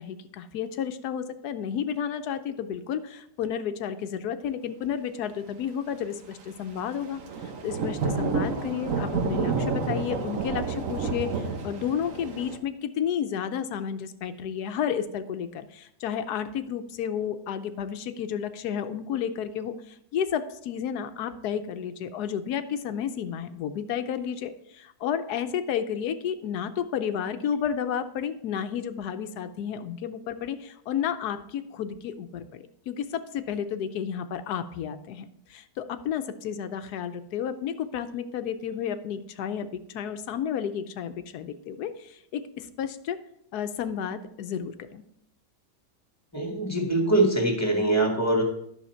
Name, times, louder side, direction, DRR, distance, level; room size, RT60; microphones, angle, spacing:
voice 1, 0.0-43.2 43.5-45.0, left 8 dB, 80° left, 10 dB, 1.2 m, -32 dB
Thunder / Rain, 7.0-12.6, right 4 dB, 60° right, 1.3 m, -29 dB
voice 2, 46.3-48.4, right 2 dB, 10° left, 1 dB, 1.7 m, -23 dB
11.0 x 6.4 x 4.4 m, 0.74 s
omnidirectional pair, 1.7 m